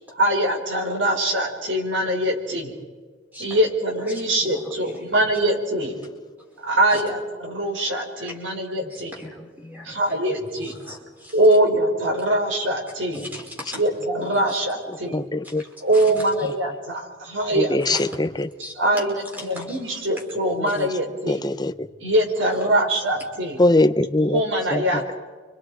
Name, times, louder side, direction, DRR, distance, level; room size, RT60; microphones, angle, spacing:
voice 1, 0.1-2.7 3.4-6.0 6.6-9.1 9.8-10.8 11.3-13.2 13.7-15.1 15.8-18.0 18.8-21.4 22.0-23.6 24.3-25.1, right 1 dB, 75° right, 2 dB, 5.0 m, -23 dB
voice 2, 4.4-5.0 6.9-7.0 8.2-8.3 8.7-11.4 13.1-13.8 14.3-14.6 15.4-16.1 16.4-16.5 17.9-18.0 18.6-20.0 22.5-23.0 23.6-23.7, left 1 dB, 10° right, -1 dB, 5.0 m, -40 dB
voice 3, 15.1-15.6 17.6-18.5 20.6-20.7 21.3-21.7 23.6-24.4 24.7-24.8, left 2 dB, 20° left, 10 dB, 0.7 m, -21 dB
30.0 x 25.5 x 5.0 m, 1.4 s
head